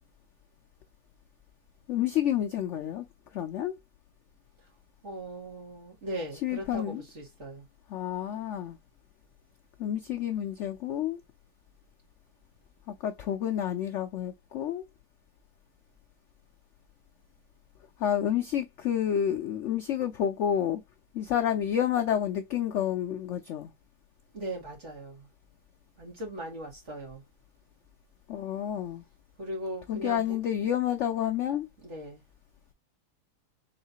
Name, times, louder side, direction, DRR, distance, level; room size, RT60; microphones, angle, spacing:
voice 1, 1.9-3.1 3.3-3.7 6.4-7.0 7.9-8.8 9.8-11.2 12.9-14.8 18.0-20.8 21.1-23.7 28.3-29.0 29.9-31.7, left 10 dB, 70° left, 0.7 m, -29 dB
voice 2, 5.0-7.6 24.3-25.3 26.0-27.2 29.4-30.4 31.8-32.2, right 1 dB, 45° right, 2.5 m, -39 dB
4.0 x 3.6 x 2.7 m
omnidirectional pair, 1.8 m